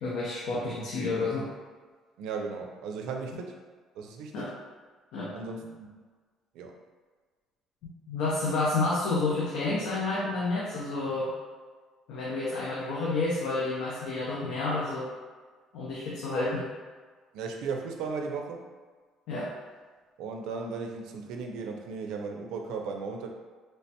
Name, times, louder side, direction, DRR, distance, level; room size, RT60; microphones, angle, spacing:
voice 1, 0.0-1.5 4.3-4.5 5.1-5.3 8.1-11.3 12.1-15.1 15.7-16.7 19.3-19.5, left 3 dB, 75° left, -6 dB, 0.5 m, -30 dB
voice 2, 2.2-3.6 4.0-4.6 5.3-5.9 6.5-6.8 17.3-18.6 20.2-23.3, right 4 dB, 80° right, 2 dB, 0.4 m, -36 dB
3.1 x 2.2 x 2.7 m, 1.4 s
cardioid pair, 165°, 0 cm